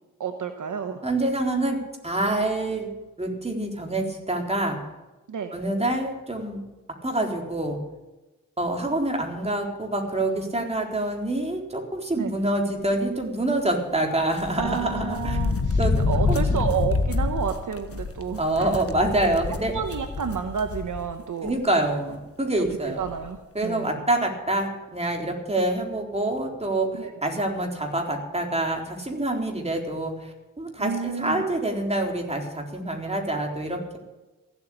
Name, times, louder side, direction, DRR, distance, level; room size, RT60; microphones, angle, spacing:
voice 1, 0.2-1.0 5.3-5.5 12.1-12.3 14.6-18.7 19.2-19.3 19.7-21.5 22.6-22.7 23.0-23.4 23.6-24.0 27.0-27.1 30.8-31.5, right 7 dB, 65° right, 7 dB, 1.1 m, -30 dB
voice 2, 1.0-1.8 2.0-2.9 3.2-4.8 5.5-6.6 7.0-7.8 8.6-15.4 15.8-15.9 16.3-16.7 18.4-19.7 21.4-23.0 23.5-34.0, right 1 dB, 20° right, 1 dB, 3.9 m, -26 dB
sound 1, 14.4-21.1 21.5-21.6 22.6-22.7 23.0-23.3, left 3 dB, 45° left, 1.4 m, -27 dB
15.5 x 8.5 x 8.7 m, 1.1 s
cardioid pair, 55°, 33 cm